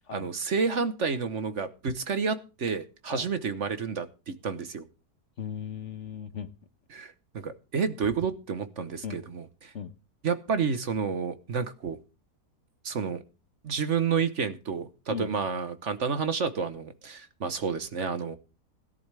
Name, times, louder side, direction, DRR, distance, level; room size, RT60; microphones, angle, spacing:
voice 1, 0.1-4.9 6.9-9.7 10.2-12.0 12.8-13.2 13.6-18.4, right 5 dB, 50° right, 1.2 m, -30 dB
voice 2, 5.4-6.5 9.0-9.2 9.7-9.9 15.1-15.3, left 7 dB, 55° left, 1.1 m, -37 dB
17.5 x 11.5 x 3.4 m
omnidirectional pair, 1.7 m